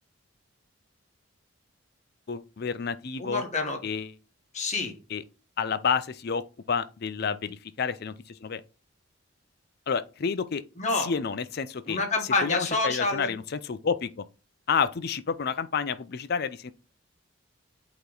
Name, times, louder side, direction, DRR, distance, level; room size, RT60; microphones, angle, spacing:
voice 1, 2.3-3.4 3.8-4.1 5.1-5.2 5.6-8.6 9.9-10.6 11.0-12.0 12.4-14.2 14.7-16.7, left 6 dB, 50° left, 0.5 m, -29 dB
voice 2, 3.2-3.8 4.5-5.0 10.8-11.1 11.9-13.3, left 3 dB, 35° left, 1.3 m, -27 dB
8.3 x 3.0 x 3.8 m
head